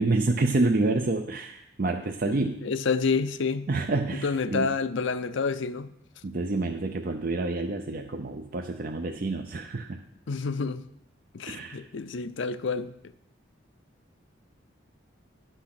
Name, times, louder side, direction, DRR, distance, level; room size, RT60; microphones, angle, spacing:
voice 1, 0.0-2.6 3.7-4.8 6.2-10.0 11.5-11.8, right 2 dB, 45° right, 0.5 m, -28 dB
voice 2, 2.3-3.7 4.2-5.9 10.3-10.8 11.3-12.9, left 4 dB, 70° left, 0.5 m, -29 dB
11.0 x 6.2 x 5.9 m
head